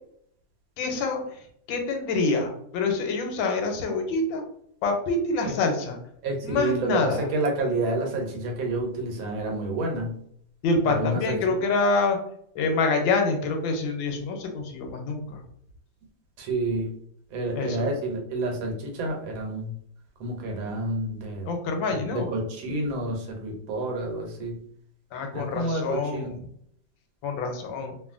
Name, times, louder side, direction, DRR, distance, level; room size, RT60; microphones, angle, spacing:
voice 1, 0.8-1.4 1.7-4.4 4.8-6.0 6.4-7.3 10.6-12.2 12.5-15.4 17.5-17.8 21.5-22.3 25.1-26.4 27.2-27.9, left 3 dB, 85° left, 4 dB, 1.3 m, -26 dB
voice 2, 6.2-10.2 10.8-11.4 16.4-16.9 17.3-19.7 20.2-21.5 21.9-24.6 25.3-26.4, right 2 dB, 85° right, 1 dB, 1.5 m, -29 dB
3.0 x 2.5 x 2.4 m, 0.67 s
omnidirectional pair, 2.1 m